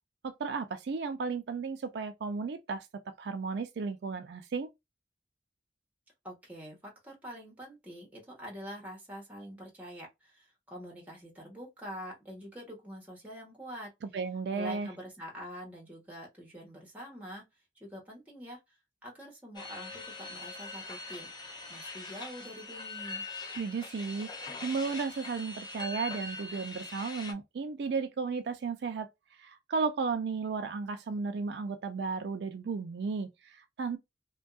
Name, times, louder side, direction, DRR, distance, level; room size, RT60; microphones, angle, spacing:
voice 1, 0.2-4.7 14.0-14.9 23.6-24.3 24.6-29.1 29.4-34.0, right 5 dB, 70° right, 0.4 m, -34 dB
voice 2, 6.2-13.9 14.5-17.4 17.7-18.6 19.0-21.3 21.7-23.2, equal, 10° right, 1.0 m, -45 dB
sound 1, 19.5-27.3, left 3 dB, 25° left, 0.4 m, -42 dB
2.6 x 2.3 x 2.3 m
head